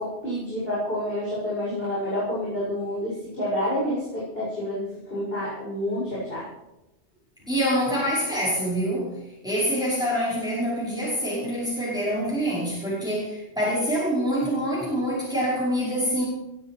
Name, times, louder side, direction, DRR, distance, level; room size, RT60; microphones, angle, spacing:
voice 1, 0.0-6.5, left 1 dB, 55° left, -8 dB, 7.5 m, -28 dB
voice 2, 7.5-9.2 9.4-16.3, equal, 5° right, -7 dB, 5.5 m, -25 dB
19.5 x 12.5 x 4.8 m, 0.93 s
omnidirectional pair, 1.2 m